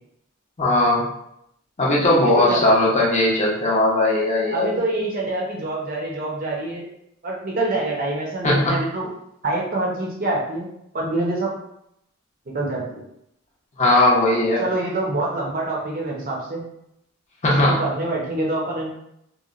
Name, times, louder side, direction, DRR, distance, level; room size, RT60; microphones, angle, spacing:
voice 1, 0.6-1.0 1.8-4.8 8.4-8.8 13.8-14.6 17.4-17.8, left 1 dB, 35° left, -4 dB, 0.6 m, -18 dB
voice 2, 2.2-2.7 4.5-6.9 7.2-9.1 9.4-10.7 10.9-11.5 12.5-13.0 14.6-16.6 17.7-18.9, right 2 dB, 40° right, -2 dB, 0.6 m, -25 dB
2.9 x 2.1 x 2.4 m, 0.77 s
head